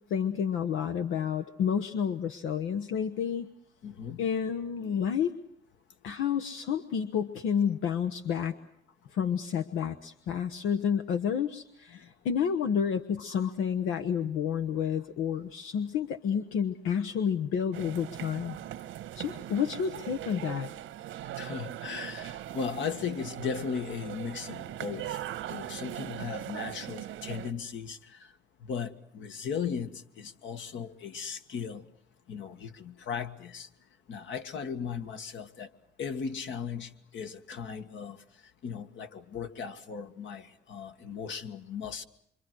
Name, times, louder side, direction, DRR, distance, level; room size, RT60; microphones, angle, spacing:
voice 1, 0.1-3.5 4.2-5.3 6.0-8.5 9.1-18.5 19.1-20.7, left 7 dB, 90° left, 1.1 m, -30 dB
voice 2, 3.8-4.2 11.9-12.0 13.3-13.5 21.4-28.3 28.6-31.8 32.3-33.7 34.1-35.7 36.0-38.2 38.6-42.0, left 6 dB, 70° left, 1.9 m, -37 dB
sound 1, 17.7-27.5, right 12 dB, 85° right, 1.4 m, -40 dB
27.0 x 25.0 x 6.3 m
cardioid pair, 90°, 20 cm